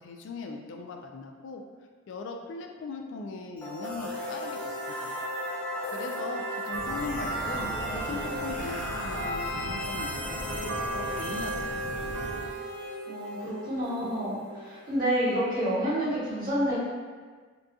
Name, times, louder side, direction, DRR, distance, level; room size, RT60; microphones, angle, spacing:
voice 1, 0.0-1.6 2.1-4.7 5.0-5.2 5.9-12.1, left 3 dB, 70° left, 3 dB, 0.3 m, -39 dB
sound 1, 3.6-15.4, left 1 dB, 10° left, 0.5 m, -36 dB
sound 2, 6.7-12.5, right 3 dB, 65° right, 0.3 m, -36 dB
Brass instrument, 8.5-13.1, right 3 dB, 45° left, 1.1 m, -45 dB
voice 2, 13.1-16.7, equal, 50° right, -9 dB, 1.2 m, -29 dB
3.9 x 2.4 x 2.3 m, 1.5 s
head